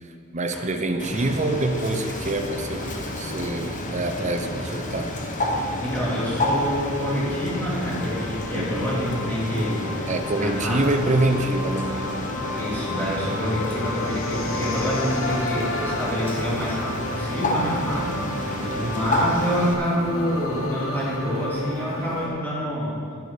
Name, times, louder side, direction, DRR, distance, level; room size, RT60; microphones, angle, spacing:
voice 1, 0.3-5.1 8.5-8.9 10.1-12.0 18.5-19.0, right 2 dB, 35° right, 6 dB, 0.8 m, -26 dB
Bird, 1.0-19.7, left 1 dB, 40° left, 1.2 m, -30 dB
sound 1, 3.6-22.3, left 1 dB, 75° left, 1.2 m, -33 dB
voice 2, 5.8-9.9 10.4-10.9 12.5-23.0, equal, 10° left, -8 dB, 3.5 m, -27 dB
11.0 x 11.0 x 5.0 m, 2.4 s
head